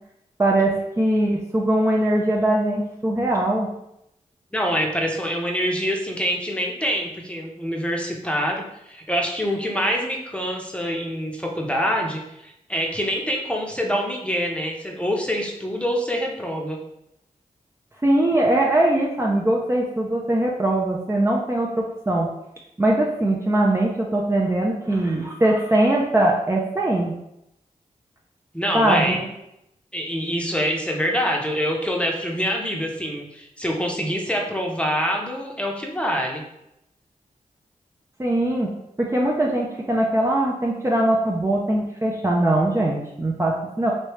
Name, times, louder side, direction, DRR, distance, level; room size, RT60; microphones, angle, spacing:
voice 1, 0.4-3.7 18.0-22.3 22.8-27.1 28.7-29.3 38.2-38.7 39.0-43.9, right 1 dB, 20° right, -3 dB, 0.5 m, -21 dB
voice 2, 4.5-16.8 28.5-29.2 29.9-36.4, equal, 10° left, 0 dB, 0.8 m, -25 dB
3.2 x 2.7 x 3.1 m, 0.82 s
cardioid pair, 50°, 14 cm